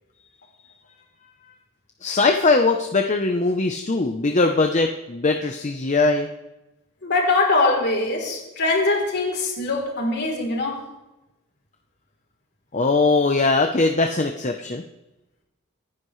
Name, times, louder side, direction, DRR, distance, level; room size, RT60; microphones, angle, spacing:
voice 1, 2.0-6.3 12.7-14.8, left 3 dB, 35° left, 4 dB, 0.8 m, -20 dB
voice 2, 7.0-10.8, left 2 dB, 50° left, 0 dB, 3.5 m, -22 dB
26.5 x 10.5 x 3.2 m, 1.0 s
head